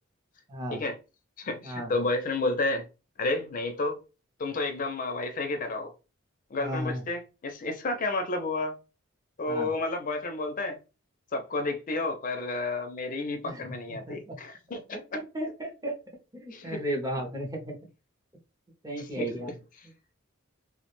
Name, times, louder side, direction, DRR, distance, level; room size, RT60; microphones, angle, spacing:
voice 1, 0.5-0.8 1.6-1.9 6.6-7.0 9.5-9.7 13.4-14.4 14.9-15.0 15.3-15.9 16.3-17.8 18.8-19.5, right 1 dB, 15° right, 0.5 m, -34 dB
voice 2, 1.4-2.9 3.2-4.0 4.4-5.9 6.5-8.8 9.4-10.8 11.3-15.0 16.5-16.8 19.0-19.6, left 2 dB, 40° left, 0.4 m, -31 dB
2.3 x 2.1 x 2.9 m
head